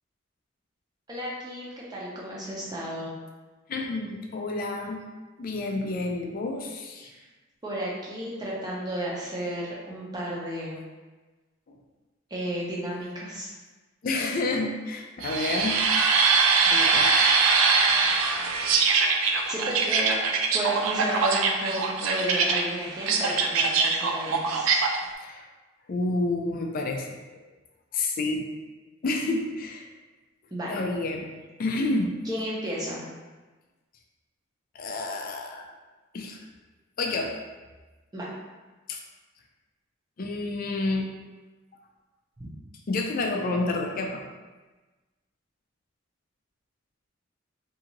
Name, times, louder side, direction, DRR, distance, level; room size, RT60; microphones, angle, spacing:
voice 1, 1.1-3.2 7.0-7.2 7.6-10.8 12.3-13.5 19.5-20.2 20.5-24.8 30.5-30.7 32.3-33.1 38.1-38.3 42.4-42.5, right 1 dB, 20° right, -5 dB, 0.6 m, -33 dB
voice 2, 3.7-5.0 5.4-7.1 11.7-11.8 14.0-15.8 16.7-17.1 25.2-25.5 25.9-27.2 27.9-28.5 29.0-29.9 30.7-31.3 31.6-32.1 34.7-35.6 36.1-36.4 37.0-37.3 38.9-39.0 40.2-41.1 42.9-44.2, left 2 dB, 45° left, 2 dB, 0.4 m, -29 dB
sound 1, 15.2-25.0, right 4 dB, 85° right, 0.3 m, -23 dB
2.6 x 2.4 x 2.9 m, 1.2 s
head